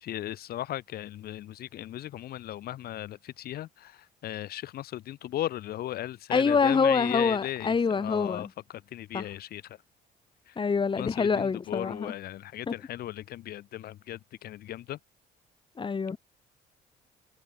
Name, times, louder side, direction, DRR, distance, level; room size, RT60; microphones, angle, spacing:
voice 1, 0.0-8.5 8.9-9.6 10.5-10.6 10.9-15.0, left 13 dB, 65° left, 1.6 m, -37 dB
voice 2, 6.3-8.5 9.1-9.3 10.5-12.1 12.7-12.8 15.8-16.2, left 5 dB, 30° left, 5.2 m, -26 dB
cardioid pair, 110°, 17 cm